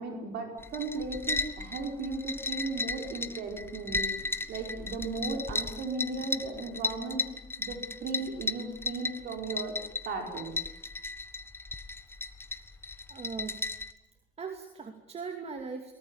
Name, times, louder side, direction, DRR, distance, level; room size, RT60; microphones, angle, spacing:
voice 1, 0.0-7.3 7.6-9.8 10.1-10.6, right 3 dB, 75° right, 3 dB, 5.2 m, -36 dB
sound 1, 0.6-13.9, left 3 dB, 15° left, 1.3 m, -35 dB
voice 2, 13.1-13.6 14.4-15.9, right 5 dB, 40° right, 6 dB, 2.5 m, -39 dB
23.0 x 19.0 x 10.0 m, 0.89 s
cardioid pair, 110°, 17 cm